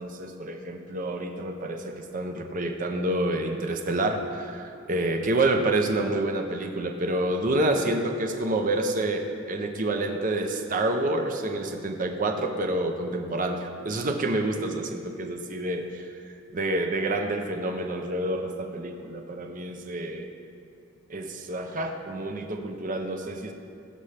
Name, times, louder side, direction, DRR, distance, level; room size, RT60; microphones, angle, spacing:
voice 1, 0.0-16.1 16.5-20.3 21.1-23.5, right 2 dB, 40° right, 4 dB, 0.6 m, -28 dB
15.0 x 5.3 x 3.4 m, 2.4 s
head